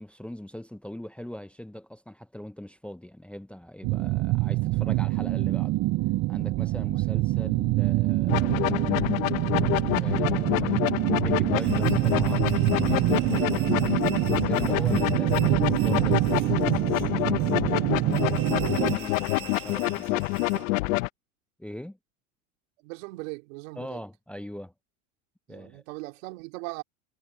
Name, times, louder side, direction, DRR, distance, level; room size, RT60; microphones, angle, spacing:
voice 1, 0.0-5.8 6.3-9.0 10.0-13.9 14.3-16.6 18.8-20.3 21.6-22.0 23.8-24.7 25.5-25.8, equal, 5° left, 1.0 m, -41 dB
sound 1, 3.8-19.0, right 19 dB, 45° right, 0.6 m, -25 dB
sound 2, 8.3-21.1, left 21 dB, 75° left, 1.0 m, -27 dB
sound 3, 11.6-20.7, right 15 dB, 90° right, 1.5 m, -46 dB
voice 2, 18.8-19.2 20.5-20.7 22.8-24.0 25.5-26.8, right 26 dB, 70° right, 3.5 m, -40 dB
supercardioid pair, 105°, 40 cm